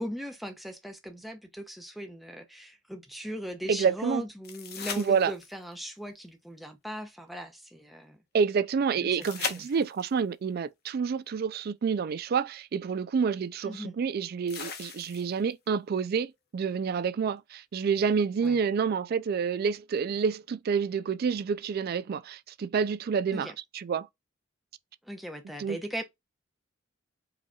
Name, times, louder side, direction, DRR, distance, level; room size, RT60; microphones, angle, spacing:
voice 1, 0.0-8.2 9.0-9.7 13.6-14.0 18.4-18.6 23.3-23.6 25.0-26.0, equal, ahead, 0.7 m, -39 dB
voice 2, 3.7-4.2 5.0-5.3 8.3-16.3 16.5-24.1 25.6-25.8, right 6 dB, 50° right, 0.3 m, -28 dB
sound 1, 4.4-5.7 9.2-10.2 12.1-12.2 14.5-15.5 18.4-18.5, left 6 dB, 50° left, 1.0 m, -38 dB
4.9 x 2.8 x 2.3 m
head